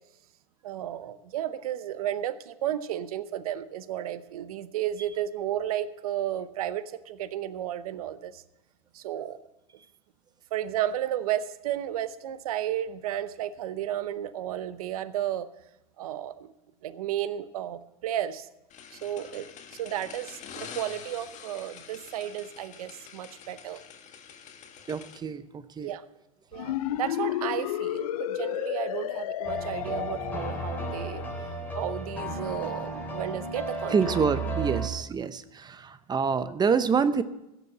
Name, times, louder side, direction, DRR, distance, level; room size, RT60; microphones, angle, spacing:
voice 1, 0.6-8.4 8.9-9.4 10.5-15.5 16.0-16.5 16.8-18.5 18.9-19.5 19.7-23.8 25.8-26.0 26.5-31.2 31.7-34.0 36.3-36.5, right 11 dB, 85° right, 14 dB, 0.8 m, -33 dB
sound 1, 18.7-25.2, left 7 dB, 40° left, 1.6 m, -46 dB
voice 2, 24.9-25.9 33.9-37.2, right 6 dB, 20° right, 13 dB, 0.7 m, -27 dB
sound 2, 26.5-31.3, left 13 dB, 90° left, 0.5 m, -32 dB
sound 3, 29.4-34.9, right 2 dB, 10° left, 3.6 m, -34 dB
16.0 x 7.0 x 7.3 m, 0.91 s
supercardioid pair, 105°, 18 cm